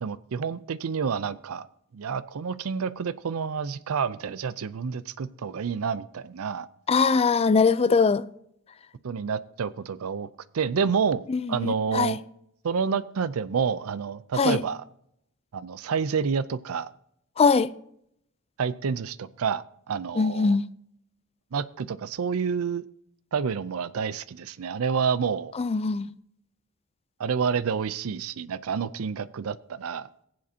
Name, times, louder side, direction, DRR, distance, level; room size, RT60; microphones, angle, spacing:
voice 1, 0.0-1.7 1.9-6.7 9.0-10.3 10.5-12.2 12.6-14.8 15.5-16.9 18.6-20.6 21.5-22.8 23.3-25.5 27.2-30.1, right 6 dB, 80° right, 0.5 m, -29 dB
voice 2, 6.9-8.2 11.3-12.2 14.4-14.6 17.4-17.7 20.2-20.6 25.6-26.1, left 4 dB, 30° left, 0.4 m, -22 dB
21.5 x 7.6 x 2.8 m
head